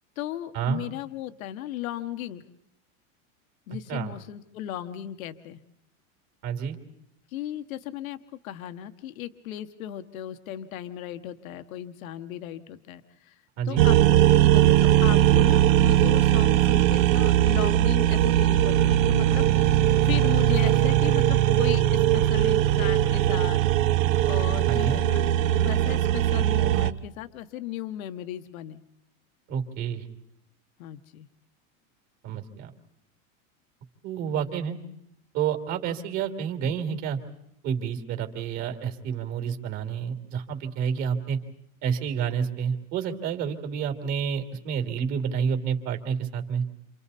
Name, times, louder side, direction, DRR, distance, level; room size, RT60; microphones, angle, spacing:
voice 1, 0.2-2.4 3.7-5.6 7.3-8.2 8.4-19.8 20.0-23.6 23.9-28.8 30.8-31.3, left 12 dB, 80° left, 9 dB, 1.3 m, -36 dB
voice 2, 6.4-6.8 13.6-13.9 24.7-25.0 29.5-30.0 32.2-32.7 34.0-34.8 35.3-37.2 37.6-41.4 41.8-46.6, right 7 dB, 40° right, 5 dB, 2.9 m, -29 dB
sound 1, 13.8-26.9, right 13 dB, 65° right, 1.0 m, -20 dB
28.5 x 27.5 x 4.2 m, 0.79 s
supercardioid pair, 160°, 41 cm